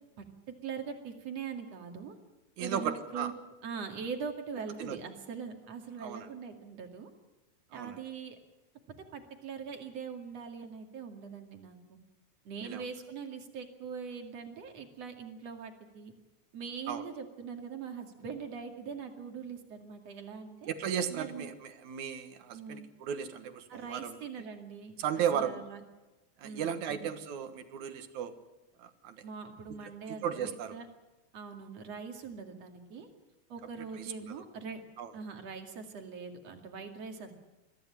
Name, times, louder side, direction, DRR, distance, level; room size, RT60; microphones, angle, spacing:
voice 1, 0.2-2.2 2.6-3.3 3.6-7.1 7.7-8.4 9.1-12.0 12.5-16.1 16.5-20.7 21.1-21.5 22.5-22.9 23.7-25.0 25.3-25.8 26.4-27.1 29.2-30.9 31.3-33.1 33.5-34.8 35.1-37.3, right 6 dB, 60° right, 5 dB, 3.3 m, -42 dB
voice 2, 2.6-3.3 4.8-5.0 6.0-6.3 7.7-8.0 12.6-12.9 16.9-17.1 20.6-24.2 25.0-25.6 26.4-28.4 28.8-29.2 29.7-29.8 30.1-30.8 33.6-34.3 35.0-35.1, right 8 dB, 75° right, 9 dB, 2.8 m, -35 dB
22.5 x 15.0 x 9.9 m, 1.1 s
omnidirectional pair, 3.4 m